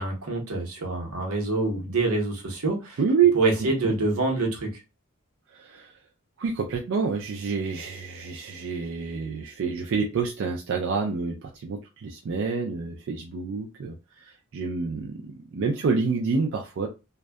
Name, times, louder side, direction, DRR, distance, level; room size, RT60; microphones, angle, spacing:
voice 1, 0.0-3.0 3.3-4.8, right 2 dB, 85° right, 0.8 m, -26 dB
voice 2, 3.0-3.3 3.6-3.9 5.5-5.9 6.4-16.9, right 5 dB, 60° right, 0.4 m, -28 dB
2.6 x 2.2 x 2.2 m
head